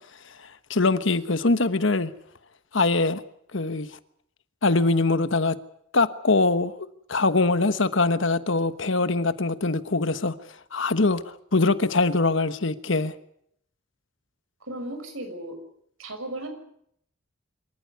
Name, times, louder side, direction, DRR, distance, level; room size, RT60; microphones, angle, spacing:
voice 1, 0.7-2.1 2.7-3.2 3.5-3.9 4.6-5.6 5.9-10.3 10.7-13.1, left 3 dB, 65° left, 1.2 m, -23 dB
voice 2, 14.6-15.6 16.0-16.5, right 1 dB, 80° right, 6.4 m, -36 dB
26.5 x 14.0 x 9.5 m
head